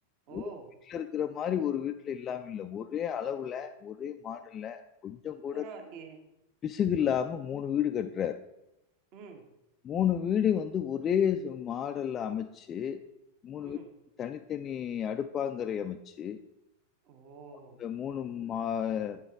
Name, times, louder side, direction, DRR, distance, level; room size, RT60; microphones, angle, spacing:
voice 1, 0.3-0.7 5.5-6.2 9.1-9.5 13.6-13.9 17.0-17.8, right 5 dB, 40° right, 5 dB, 1.1 m, -47 dB
voice 2, 0.9-5.6 6.6-8.4 9.8-13.0 13.4-13.8 14.2-16.4 17.8-19.2, left 9 dB, 25° left, 6 dB, 0.3 m, -31 dB
8.2 x 7.1 x 3.5 m, 0.91 s
figure-of-eight pair, 90°, 0 cm